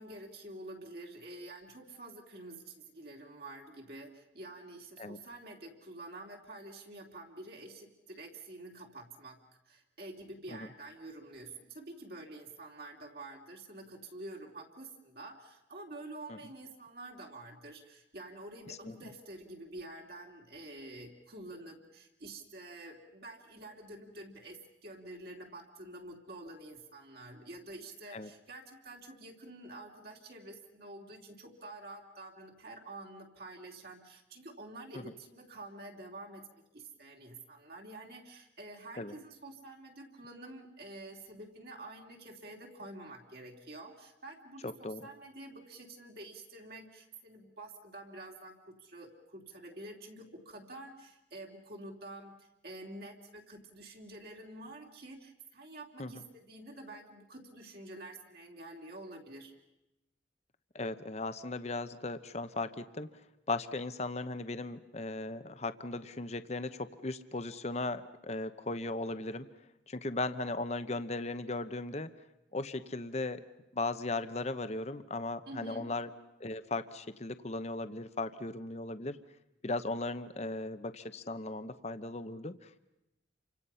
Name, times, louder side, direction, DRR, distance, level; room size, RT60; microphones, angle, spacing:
voice 1, 0.0-9.4 9.6-59.5 75.5-76.0, right 2 dB, 55° right, 0 dB, 2.9 m, -48 dB
voice 2, 44.6-45.0 56.0-56.2 60.7-63.1 63.5-69.5 69.9-72.1 72.5-73.4 73.7-76.1 76.4-79.2 79.6-82.8, left 2 dB, 35° left, 11 dB, 0.9 m, -37 dB
29.5 x 25.5 x 5.7 m, 0.93 s
head